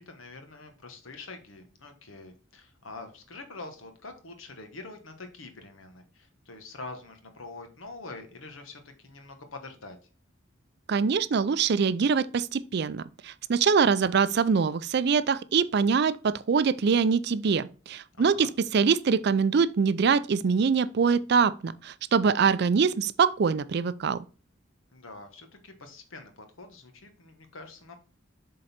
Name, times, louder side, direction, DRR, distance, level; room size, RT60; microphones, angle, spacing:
voice 1, 0.0-10.0 18.1-18.5 24.9-28.0, left 3 dB, 80° left, 1.3 m, -45 dB
voice 2, 10.9-24.2, right 5 dB, 55° right, 0.4 m, -24 dB
7.6 x 3.8 x 4.3 m
head